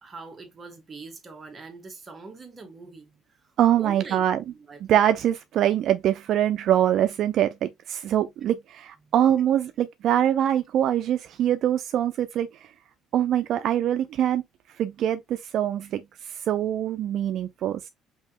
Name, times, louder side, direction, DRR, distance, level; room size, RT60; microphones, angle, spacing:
voice 1, 0.0-3.2 3.8-4.2 4.7-4.8 9.0-9.1, right 4 dB, 25° right, 1.3 m, -42 dB
voice 2, 3.6-4.4 4.8-12.7 13.1-14.4 14.8-17.9, right 11 dB, 65° right, 0.3 m, -24 dB
5.5 x 2.8 x 2.3 m
cardioid pair, 110°, 0 cm